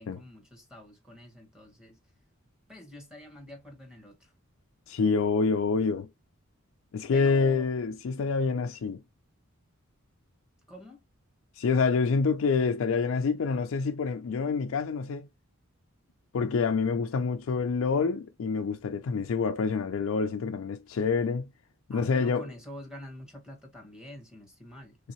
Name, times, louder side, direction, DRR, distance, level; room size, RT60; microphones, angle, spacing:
voice 1, 0.0-2.0 2.7-4.3 7.1-7.7 10.7-11.0 21.9-25.0, equal, 5° right, 1.1 m, -46 dB
voice 2, 4.9-6.1 6.9-9.0 11.6-15.3 16.3-21.5 21.9-22.5, left 4 dB, 70° left, 0.4 m, -27 dB
3.4 x 2.7 x 2.8 m
head